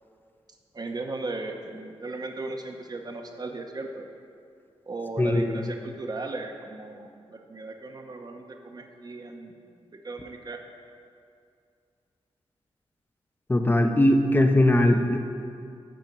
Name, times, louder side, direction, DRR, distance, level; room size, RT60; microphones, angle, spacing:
voice 1, 0.7-4.0 4.9-9.5 10.0-10.6, right 2 dB, 40° right, 4 dB, 0.9 m, -36 dB
voice 2, 5.2-5.6 13.5-15.2, left 1 dB, 20° left, 5 dB, 0.8 m, -20 dB
9.3 x 4.4 x 7.4 m, 2.4 s
cardioid pair, 70°, 11 cm